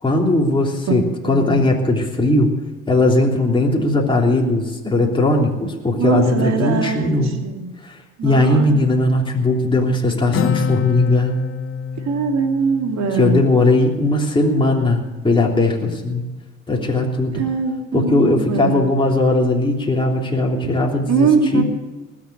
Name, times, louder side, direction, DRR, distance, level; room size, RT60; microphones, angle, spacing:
voice 1, 0.0-2.5 2.9-7.3 7.8-11.3 13.2-16.2 16.7-17.4 17.9-21.6, left 2 dB, 15° left, -1 dB, 3.3 m, -18 dB
voice 2, 1.2-1.5 5.9-7.7 8.2-8.8 12.0-13.4 17.3-18.8 20.6-20.7 21.1-21.6, right 5 dB, 65° right, 3 dB, 2.9 m, -21 dB
Acoustic guitar, 10.3-14.0, left 7 dB, 45° left, 0.8 m, -26 dB
19.5 x 7.6 x 8.2 m, 1.2 s
supercardioid pair, 70°, 30 cm